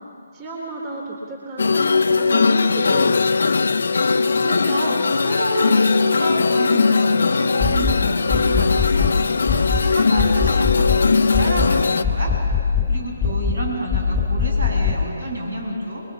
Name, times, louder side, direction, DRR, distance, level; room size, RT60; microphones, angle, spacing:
voice 1, 0.3-3.2, right 1 dB, 20° right, -2 dB, 3.7 m, -31 dB
sound 1, 1.6-12.0, left 4 dB, 65° left, 1.0 m, -19 dB
voice 2, 4.2-12.3 12.9-16.0, right 1 dB, 70° right, 1 dB, 7.7 m, -29 dB
sound 2, 7.6-8.0 8.3-9.2 9.5-9.9 10.2-11.0 11.3-11.7 12.0-12.9 13.2-13.6 13.9-15.0, left 6 dB, 5° left, 2.8 m, -21 dB
29.5 x 22.5 x 7.3 m, 2.6 s
figure-of-eight pair, 140°, 0 cm